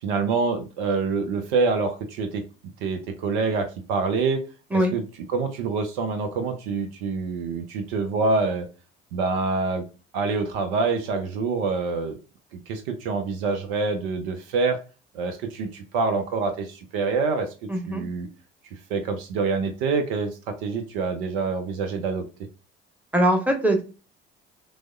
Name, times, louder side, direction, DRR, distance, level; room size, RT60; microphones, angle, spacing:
voice 1, 0.0-2.4 2.8-4.4 4.7-5.0 5.3-8.7 9.1-9.8 10.1-12.2 12.5-14.8 15.1-17.5 17.9-18.3 18.9-22.2, right 4 dB, 60° right, 7 dB, 0.7 m, -26 dB
voice 2, 17.7-18.0 23.1-23.8, right 1 dB, 5° right, 4 dB, 1.1 m, -21 dB
6.0 x 2.1 x 2.2 m, 0.33 s
figure-of-eight pair, 55°, 31 cm